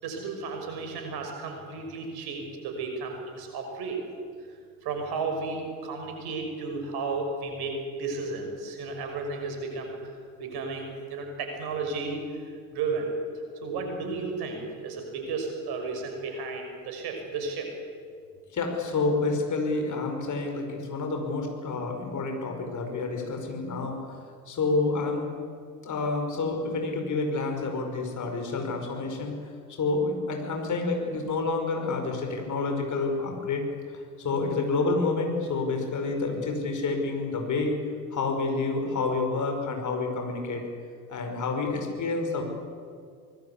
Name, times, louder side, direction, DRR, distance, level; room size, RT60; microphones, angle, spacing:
voice 1, 0.0-4.0 4.8-13.1 13.3-17.7, right 4 dB, 55° right, 3 dB, 6.1 m, -33 dB
voice 2, 18.5-24.2 24.5-25.3 25.8-29.3 29.8-33.6 34.2-37.7 38.1-40.6 41.1-42.4, left 3 dB, 40° left, 3 dB, 5.4 m, -28 dB
25.5 x 20.0 x 8.5 m, 2.1 s
figure-of-eight pair, 55°, 45 cm